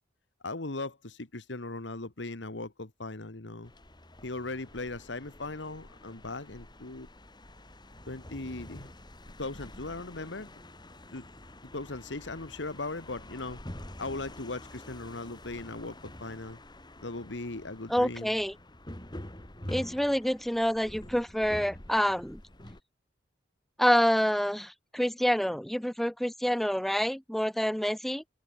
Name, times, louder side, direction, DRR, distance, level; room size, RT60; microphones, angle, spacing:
voice 1, 0.4-3.7 4.2-7.1 8.1-8.9 9.4-10.5 11.1-11.2 11.7-13.6 14.0-16.6 17.0-18.3, left 2 dB, 75° left, 1.7 m, -38 dB
sound 1, 3.6-22.8, left 1 dB, 25° left, 3.3 m, -47 dB
voice 2, 17.9-18.5 19.7-22.4 23.8-28.2, equal, ahead, 0.4 m, -27 dB
head